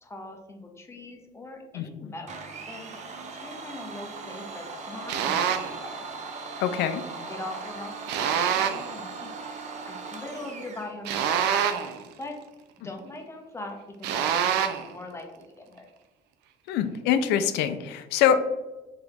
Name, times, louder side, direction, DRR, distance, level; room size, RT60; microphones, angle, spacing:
voice 1, 0.0-2.3 2.6-2.9 3.3-6.0 6.4-6.6 7.3-9.3 9.9-12.4 12.8-15.9, left 2 dB, 15° left, 3 dB, 0.7 m, -41 dB
voice 2, 1.7-2.1 6.6-7.0 16.7-18.4, left 9 dB, 85° left, 10 dB, 0.4 m, -24 dB
Domestic sounds home sounds, 2.3-10.9, right 4 dB, 45° right, 0.6 m, -39 dB
sound 1, 5.1-5.8 8.1-8.9 11.1-12.0 14.0-14.9, right 8 dB, 90° right, 0.4 m, -26 dB
3.7 x 3.0 x 3.4 m, 1.1 s
cardioid pair, 110°, 17 cm